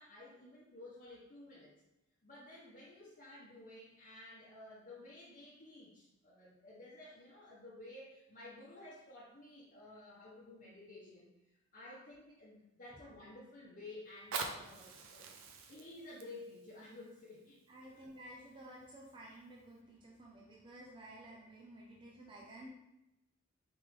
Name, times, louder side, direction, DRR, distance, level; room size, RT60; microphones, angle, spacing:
voice 1, 0.0-1.7 2.2-11.3 11.7-15.3 15.7-18.0, left 2 dB, 40° left, -10 dB, 1.2 m, -53 dB
Fire, 14.1-19.0 19.7-19.8, right 4 dB, 85° right, 0.6 m, -46 dB
voice 2, 17.7-22.7, right 1 dB, 25° right, -3 dB, 0.5 m, -53 dB
4.4 x 3.6 x 3.2 m, 0.90 s
head